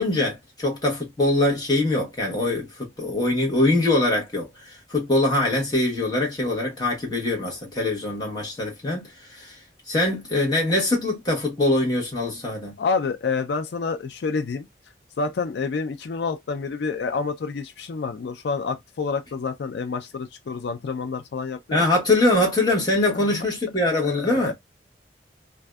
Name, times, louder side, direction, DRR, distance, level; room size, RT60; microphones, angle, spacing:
voice 1, 0.0-9.6 9.9-12.7 21.7-24.5, left 2 dB, 20° left, 1.0 m, -23 dB
voice 2, 12.8-14.7 15.2-21.8 23.1-23.4 24.0-24.5, left 4 dB, 65° left, 0.4 m, -28 dB
2.5 x 2.2 x 2.2 m
head